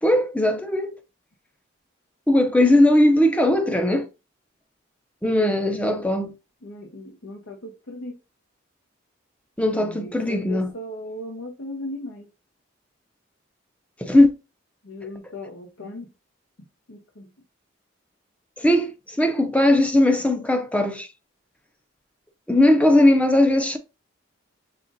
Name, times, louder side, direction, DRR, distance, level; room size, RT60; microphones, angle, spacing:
voice 1, 0.0-1.0 2.3-4.1 5.2-6.3 9.6-10.7 14.0-14.3 18.6-21.1 22.5-23.8, left 1 dB, 5° left, 0.6 m, -19 dB
voice 2, 5.3-6.1 6.6-8.2 9.7-12.3 14.8-16.1 16.9-17.3, left 1 dB, 80° left, 0.9 m, -37 dB
5.7 x 3.6 x 2.5 m
head